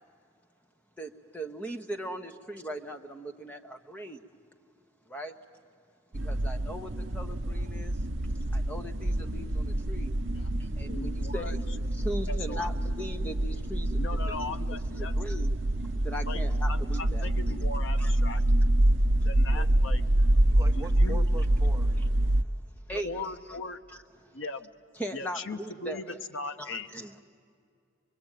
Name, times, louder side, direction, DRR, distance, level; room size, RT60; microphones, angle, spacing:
voice 1, 1.0-4.2 5.1-5.4 6.2-8.0 8.5-10.1 10.6-14.6 14.9-15.5 16.0-17.6 18.0-18.1 22.9-23.6 23.9-24.3 24.9-26.2 26.6-27.1, right 1 dB, 5° left, 5 dB, 1.2 m, -39 dB
sound 1, 6.1-22.4, right 1 dB, 60° right, 0.9 m, -26 dB
voice 2, 10.9-11.6 12.3-12.7 14.0-15.1 16.2-16.4 16.7-18.4 19.2-20.0 20.7-21.2 22.9-23.8 24.3-24.7 25.1-26.0 26.3-26.9, left 3 dB, 65° left, 8 dB, 0.9 m, -38 dB
voice 3, 20.5-21.9, right 1 dB, 15° right, 3 dB, 1.1 m, -42 dB
23.5 x 23.5 x 9.1 m, 2.3 s
head